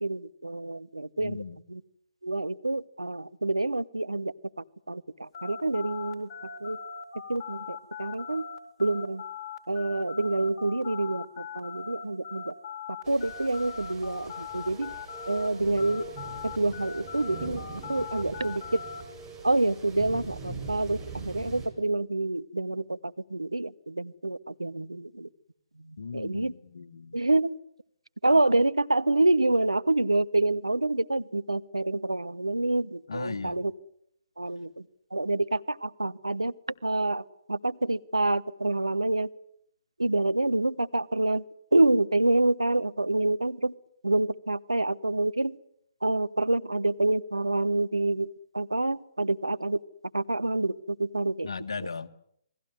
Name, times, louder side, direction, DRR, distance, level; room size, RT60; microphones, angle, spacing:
voice 1, 0.0-1.4 1.7-1.8 2.2-4.3 4.9-6.3 6.6-6.8 7.3-8.5 8.8-9.2 9.7-12.5 13.1-14.9 15.3-16.1 16.4-17.6 17.9-18.8 19.4-25.3 25.9-26.5 27.1-27.6 28.2-33.7 34.4-34.7 35.1-36.5 36.8-39.3 40.0-41.4 41.7-43.7 44.0-45.6 46.0-48.3 48.5-49.8 50.1-51.5, right 2 dB, 90° right, 1.1 m, -27 dB
voice 2, 1.2-1.6 26.0-27.2 33.1-33.6 51.4-52.1, left 5 dB, 70° left, 1.7 m, -37 dB
sound 1, 5.3-15.5 15.8-19.0, left 6 dB, 40° left, 4.5 m, -40 dB
sound 2, 13.0-21.7, right 4 dB, 20° right, 7.9 m, -42 dB
28.5 x 20.5 x 7.9 m
figure-of-eight pair, 130°, 3 cm